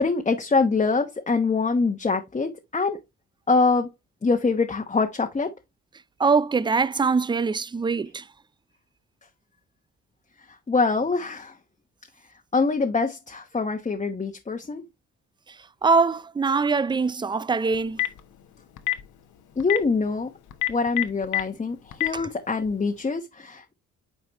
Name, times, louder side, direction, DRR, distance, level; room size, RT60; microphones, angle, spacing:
voice 1, 0.0-3.0 3.5-3.9 4.2-5.5 10.7-11.5 12.5-14.8 19.6-20.3 20.7-23.7, left 4 dB, 25° left, 1.1 m, -24 dB
voice 2, 6.2-8.2 15.8-18.0 22.1-22.2, right 4 dB, 15° right, 0.4 m, -23 dB
Telephone, 17.7-18.2 18.8-19.0 19.6-19.8 20.5-21.4 21.9-22.1, left 14 dB, 80° left, 1.2 m, -23 dB
9.1 x 4.7 x 3.0 m
cardioid pair, 90°, 30 cm